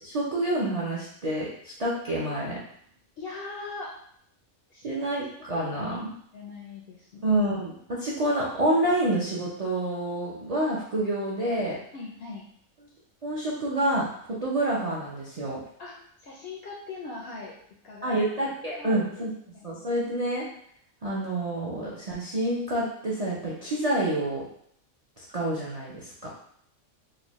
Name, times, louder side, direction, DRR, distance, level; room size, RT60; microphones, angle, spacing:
voice 1, 0.0-2.6 4.8-6.1 7.2-11.8 13.2-15.6 18.0-19.3 19.6-20.5 21.0-24.5 25.2-26.3, right 1 dB, 55° right, -6 dB, 0.4 m, -28 dB
voice 2, 3.2-4.0 4.7-5.0 5.5-5.7 6.3-7.4 11.9-12.5 15.8-17.5 17.8-19.2 19.5-19.7, left 3 dB, 65° left, -2 dB, 0.6 m, -41 dB
4.1 x 2.1 x 3.0 m, 0.67 s
omnidirectional pair, 1.4 m